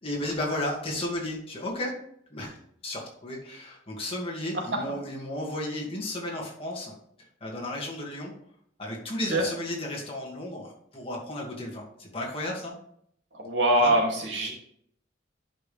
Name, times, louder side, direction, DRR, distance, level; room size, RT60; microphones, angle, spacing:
voice 1, 0.0-1.9 2.3-2.5 2.8-6.9 7.4-8.3 8.8-12.7 13.8-13.9, left 1 dB, 30° left, -2 dB, 2.1 m, -33 dB
voice 2, 13.4-14.5, right 1 dB, 75° right, -1 dB, 2.5 m, -23 dB
11.0 x 5.5 x 3.4 m, 0.68 s
head